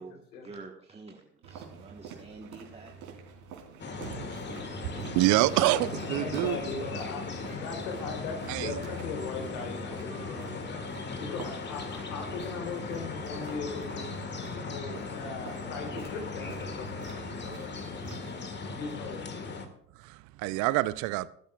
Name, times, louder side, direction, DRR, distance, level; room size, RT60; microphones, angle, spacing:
voice 1, 0.4-2.9 4.9-5.0, right 3 dB, 10° right, 1.4 m, -47 dB
sound 1, 1.4-18.5, right 6 dB, 60° right, 3.5 m, -47 dB
sound 2, 3.8-19.7, left 4 dB, 20° left, 1.7 m, -38 dB
voice 2, 4.0-4.4 4.8-6.6 8.5-8.8 20.0-21.3, right 18 dB, 40° right, 0.6 m, -27 dB
voice 3, 5.6-10.9 11.2-14.1 14.5-18.2 18.7-19.6, left 4 dB, 65° left, 3.7 m, -39 dB
20.5 x 12.5 x 2.4 m
figure-of-eight pair, 80°, 49 cm